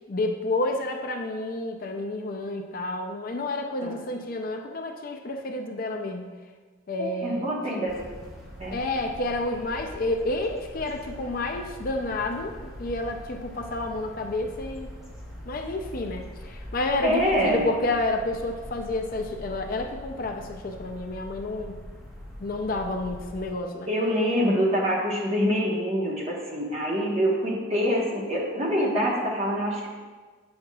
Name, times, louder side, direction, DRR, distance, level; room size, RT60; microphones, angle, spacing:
voice 1, 0.1-6.3 6.9-7.8 8.7-14.9 15.5-21.8 22.4-23.9, left 2 dB, 40° left, 4 dB, 0.4 m, -30 dB
voice 2, 7.0-8.0 8.6-8.8 17.0-17.7 23.9-29.9, equal, 30° right, -3 dB, 1.2 m, -25 dB
sound 1, 7.9-23.5, equal, ahead, 1.2 m, -42 dB
8.8 x 6.4 x 2.3 m, 1.4 s
head